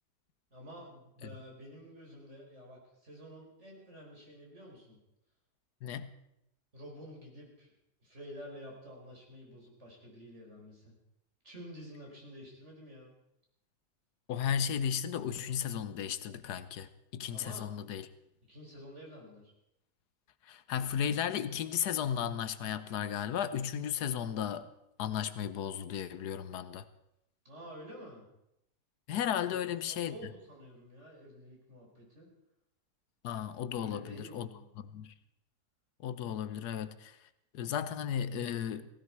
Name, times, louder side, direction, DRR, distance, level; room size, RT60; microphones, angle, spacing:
voice 1, 0.5-5.0 6.7-7.7 8.0-10.9 11.4-13.1 17.3-17.7 18.5-19.5 27.4-28.2 29.4-32.3 33.7-34.7, equal, 45° right, 5.2 m, -50 dB
voice 2, 5.8-6.1 14.3-18.1 20.5-24.7 25.0-26.8 29.1-30.2 33.2-34.5 34.8-35.1 36.0-37.2 37.5-38.9, left 9 dB, 85° left, 1.4 m, -34 dB
18.0 x 16.0 x 4.7 m
omnidirectional pair, 1.7 m